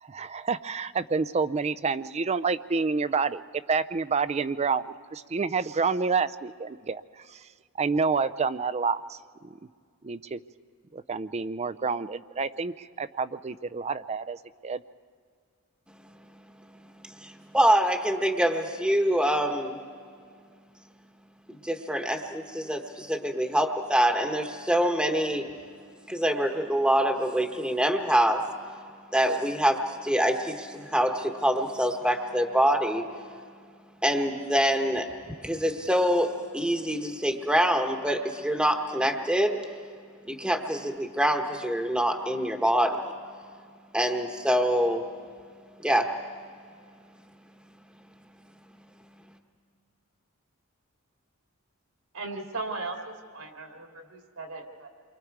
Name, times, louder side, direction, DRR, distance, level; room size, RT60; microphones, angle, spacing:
voice 1, 0.0-3.4 3.7-4.9 5.1-7.0 7.3-7.4 7.8-9.6 10.0-10.4 10.9-14.8, right 4 dB, 30° right, 13 dB, 0.5 m, -28 dB
voice 2, 17.0-19.8 21.6-25.4 26.1-28.4 29.1-33.0 34.0-35.1 35.4-39.6 40.3-43.0 43.9-45.0 45.8-46.1, equal, 5° right, 4 dB, 1.1 m, -25 dB
voice 3, 52.1-54.9, right 3 dB, 80° right, 2 dB, 3.0 m, -37 dB
29.0 x 24.0 x 4.7 m, 2.1 s
head